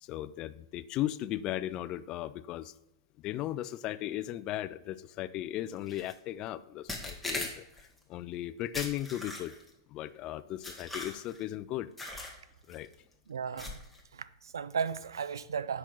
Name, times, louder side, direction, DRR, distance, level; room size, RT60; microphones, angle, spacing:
voice 1, 0.0-2.7 3.2-7.6 8.1-9.5 9.9-11.9 12.7-12.9, left 13 dB, 40° left, 0.4 m, -36 dB
sound 1, 5.9-6.1 6.9-7.9 8.7-9.7 10.6-11.4 12.0-12.4 12.7-12.9 13.6-14.0, left 2 dB, 5° left, 1.3 m, -40 dB
voice 2, 13.3-13.8 14.1-15.8, right 6 dB, 90° right, 0.3 m, -35 dB
5.4 x 4.4 x 6.1 m
hypercardioid pair, 115°, 2 cm